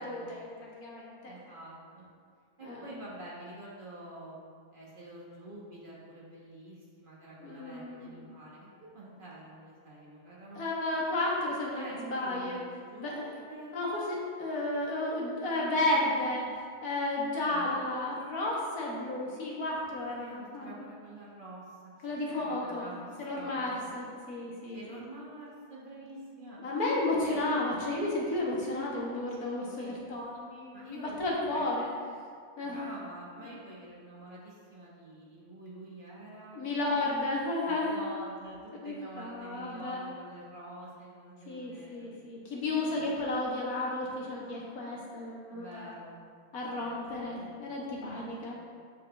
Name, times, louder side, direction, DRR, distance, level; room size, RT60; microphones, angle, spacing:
voice 1, 0.0-1.4 2.6-2.8 7.4-8.3 10.6-12.6 13.0-13.3 13.7-16.5 16.8-20.7 22.0-22.9 23.2-25.0 26.6-31.9 32.6-32.9 36.5-38.1 38.8-40.0 41.5-45.9 46.5-48.6, left 2 dB, 85° left, -4 dB, 1.9 m, -33 dB
voice 2, 1.2-2.0 2.6-4.4 4.7-8.7 8.9-10.7 11.7-13.8 17.5-17.8 19.9-23.9 24.7-26.6 27.2-27.6 29.4-29.5 29.7-30.1 30.7-31.3 31.5-31.7 32.6-36.6 37.7-42.1 42.8-43.3 45.5-46.1 46.7-47.4 48.1-48.6, right 1 dB, 35° right, -5 dB, 1.6 m, -47 dB
7.1 x 6.6 x 3.4 m, 2.1 s
omnidirectional pair, 1.5 m